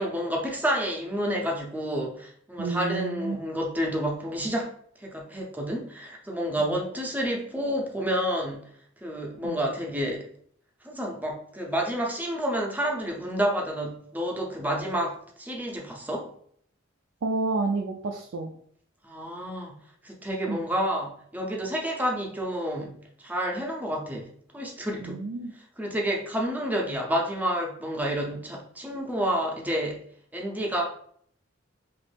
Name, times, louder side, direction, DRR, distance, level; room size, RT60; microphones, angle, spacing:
voice 1, 0.0-4.7 5.0-8.6 9.0-10.3 10.8-16.3 19.0-19.8 20.0-24.3 24.5-25.2 25.8-30.0 30.3-30.9, equal, 10° right, 0 dB, 0.6 m, -29 dB
voice 2, 2.6-3.4 9.4-9.6 17.2-18.5 20.5-20.6 25.0-25.5, right 3 dB, 70° right, 1 dB, 0.4 m, -29 dB
3.0 x 2.4 x 3.3 m, 0.62 s
head